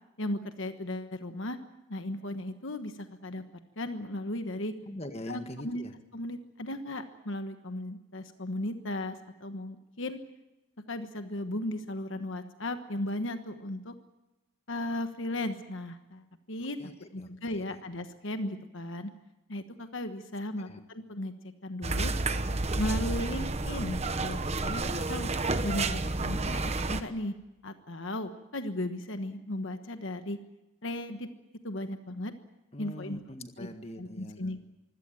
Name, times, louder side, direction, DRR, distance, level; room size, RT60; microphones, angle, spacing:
voice 1, 0.2-1.6 1.9-3.4 3.8-4.7 5.3-5.8 6.1-10.2 10.9-13.9 14.7-16.8 17.1-19.1 19.5-21.3 21.6-22.1 22.7-25.3 25.6-27.3 27.6-30.4 30.8-31.3 31.6-32.3 32.8-33.2 33.6-33.7 34.0-34.6, left 1 dB, 60° left, 8 dB, 1.3 m, -36 dB
voice 2, 4.9-5.9 16.8-17.8 20.6-20.8 32.7-34.4, left 1 dB, 30° left, 7 dB, 1.7 m, -43 dB
sound 1, 21.8-27.0, right 2 dB, 30° right, 1.1 m, -30 dB
24.5 x 17.0 x 9.0 m, 0.99 s
head